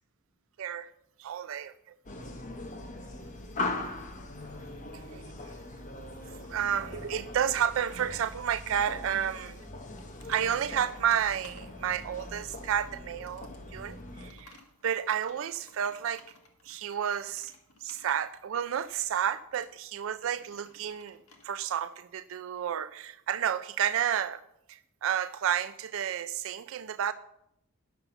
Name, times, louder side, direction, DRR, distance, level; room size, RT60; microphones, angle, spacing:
voice 1, 0.6-0.9 1.2-1.9 5.1-5.2 6.3-9.7 10.3-14.6 14.8-16.2 16.6-17.5 17.8-21.2 21.4-24.4 24.7-27.1, right 9 dB, 60° right, 12 dB, 0.3 m, -31 dB
sound 1, 2.1-14.3, left 2 dB, 35° left, 0.9 m, -41 dB
Computer keyboard, 8.5-21.5, left 3 dB, 80° left, 1.8 m, -59 dB
10.5 x 5.6 x 6.8 m, 0.82 s
head